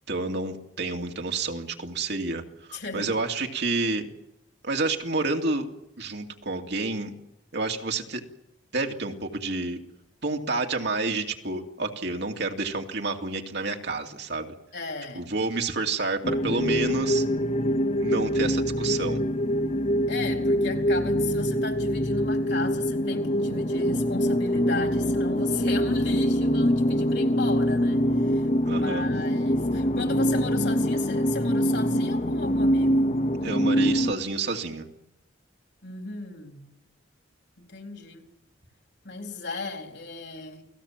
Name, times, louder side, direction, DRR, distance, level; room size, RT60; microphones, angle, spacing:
voice 1, 0.1-2.4 2.7-4.1 4.6-5.7 6.0-7.1 7.5-8.2 8.7-9.8 10.2-14.5 15.1-17.2 18.0-19.2 28.7-29.1 33.4-34.9, right 3 dB, 60° right, 2.6 m, -29 dB
voice 2, 2.7-3.2 14.7-15.3 20.1-33.2 35.8-36.6 37.6-38.2 39.0-40.6, left 4 dB, 60° left, 4.1 m, -35 dB
sound 1, 16.2-34.1, equal, 35° left, 0.9 m, -24 dB
29.0 x 19.5 x 7.5 m
head